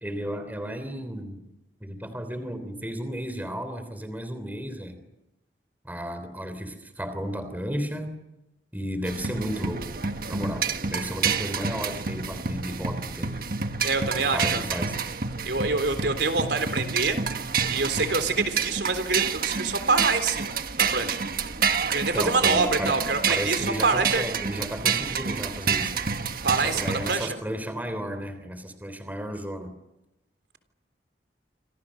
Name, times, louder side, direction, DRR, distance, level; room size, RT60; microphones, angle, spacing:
voice 1, 0.0-1.4 1.8-5.0 5.8-8.1 8.7-13.4 14.3-15.0 22.1-23.0 23.3-26.0 26.6-29.7, equal, 10° right, 9 dB, 3.4 m, -33 dB
sound 1, 9.0-27.2, right 6 dB, 50° right, 1.6 m, -29 dB
voice 2, 13.8-14.6 15.5-17.2 17.7-20.5 20.8-21.2 21.9-24.3 26.4-27.4, right 4 dB, 70° right, 9 dB, 3.6 m, -26 dB
27.5 x 27.0 x 6.5 m, 0.93 s
head